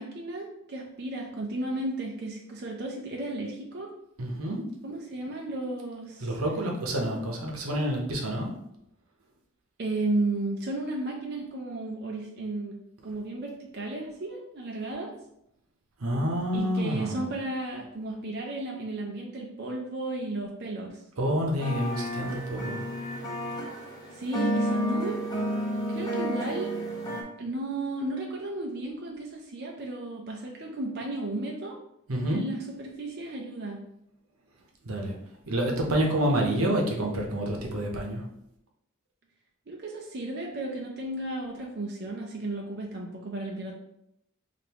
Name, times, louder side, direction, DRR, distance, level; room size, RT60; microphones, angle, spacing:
voice 1, 0.0-3.9 4.8-6.3 9.8-12.8 13.0-15.1 16.5-21.0 24.1-25.2 25.9-26.7 27.4-31.8 32.3-33.8 39.7-43.7, right 2 dB, 50° right, -1 dB, 0.6 m, -34 dB
voice 2, 4.2-4.6 6.2-8.5 16.0-17.3 21.2-22.8 32.1-32.4 34.8-35.2 35.5-38.3, right 1 dB, 90° right, 0 dB, 0.9 m, -28 dB
sound 1, 21.6-27.2, equal, 20° left, 0.7 m, -31 dB
5.2 x 2.5 x 2.9 m, 0.78 s
head